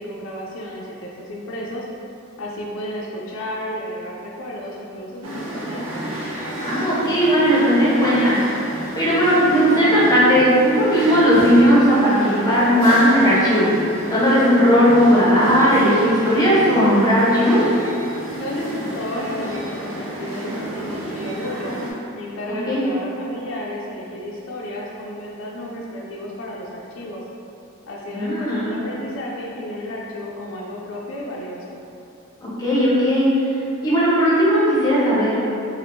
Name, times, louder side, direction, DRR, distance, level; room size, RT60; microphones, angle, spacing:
voice 1, 0.0-1.9 2.4-5.8 18.4-21.7 22.2-27.2 27.9-31.8, left 1 dB, 65° left, -3 dB, 0.4 m, -32 dB
sound 1, 5.2-21.9, right 1 dB, 90° right, 0.6 m, -30 dB
voice 2, 6.6-8.4 8.9-17.6 22.7-22.8 28.1-28.7 32.4-33.3 33.8-35.4, equal, 20° left, -9 dB, 0.8 m, -16 dB
3.4 x 2.4 x 2.6 m, 2.7 s
head